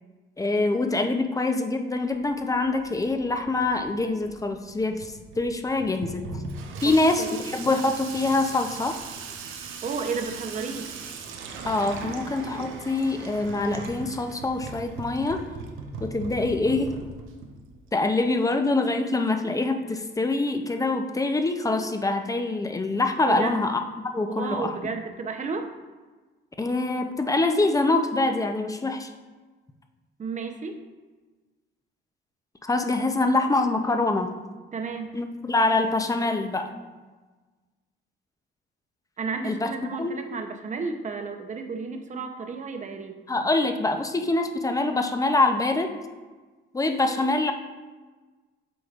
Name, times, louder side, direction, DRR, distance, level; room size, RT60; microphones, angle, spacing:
voice 1, 0.4-6.4 6.8-9.0 11.7-15.5 16.0-17.0 17.9-23.8 24.1-24.8 26.6-29.1 32.6-34.3 35.1-36.7 39.4-39.7 40.0-40.2 43.3-45.9 46.7-47.5, left 2 dB, 15° left, 6 dB, 0.5 m, -25 dB
Water tap faucet / Sink (filling or washing), 2.0-18.0, right 4 dB, 85° right, 0.7 m, -39 dB
voice 2, 9.8-10.9 23.3-23.6 24.3-25.7 30.2-30.8 34.7-35.1 39.2-43.2, right 4 dB, 40° right, 5 dB, 0.7 m, -32 dB
7.8 x 4.9 x 2.4 m, 1.3 s
cardioid pair, 90°, 20 cm